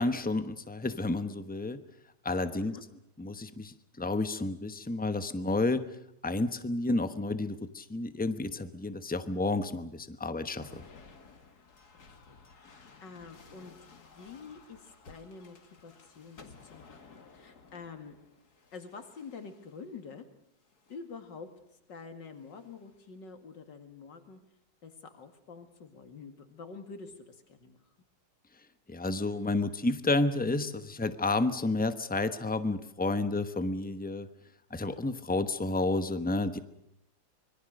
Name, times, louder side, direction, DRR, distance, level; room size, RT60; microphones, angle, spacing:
voice 1, 0.0-1.8 2.2-2.8 3.2-5.8 6.2-10.8 28.9-34.3 34.7-36.6, left 2 dB, 10° left, 11 dB, 0.6 m, -31 dB
sound 1, 10.6-20.0 20.7-21.2 22.3-23.0, left 4 dB, 60° left, 2.4 m, -56 dB
voice 2, 12.1-18.2 18.7-20.2 20.9-21.5 21.9-24.4 24.8-27.8, left 5 dB, 75° left, 7 dB, 2.8 m, -47 dB
25.5 x 22.5 x 6.5 m, 0.80 s
omnidirectional pair, 2.0 m